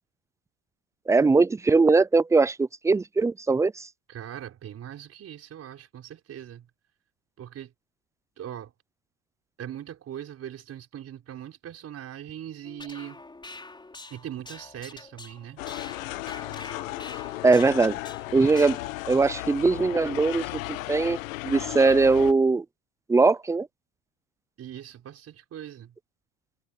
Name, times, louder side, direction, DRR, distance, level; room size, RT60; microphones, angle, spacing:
voice 1, 1.1-3.9 17.4-18.0 18.3-18.8 19.1-21.2 21.4-22.6 23.1-23.7, right 3 dB, 10° right, 0.4 m, -21 dB
voice 2, 4.1-6.7 7.4-7.7 8.4-8.7 9.6-13.2 14.1-15.6 24.6-25.9, right 10 dB, 40° right, 5.0 m, -40 dB
sound 1, 12.6-19.0, left 3 dB, 10° left, 6.5 m, -45 dB
sound 2, 15.6-22.3, left 18 dB, 85° left, 1.3 m, -35 dB
supercardioid pair, 110°, 38 cm